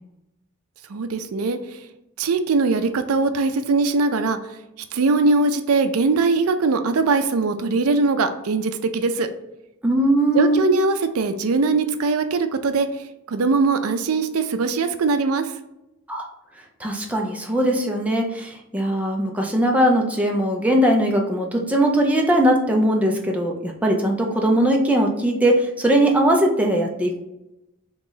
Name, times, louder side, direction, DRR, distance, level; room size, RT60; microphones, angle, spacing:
voice 1, 0.9-1.8 2.2-4.4 4.9-9.3 10.3-12.9 13.3-15.5, right 3 dB, 85° right, 9 dB, 0.4 m, -21 dB
voice 2, 9.8-10.6 16.1-16.3 16.8-27.2, right 1 dB, 5° right, 0 dB, 0.5 m, -20 dB
3.8 x 3.0 x 3.8 m, 0.90 s
head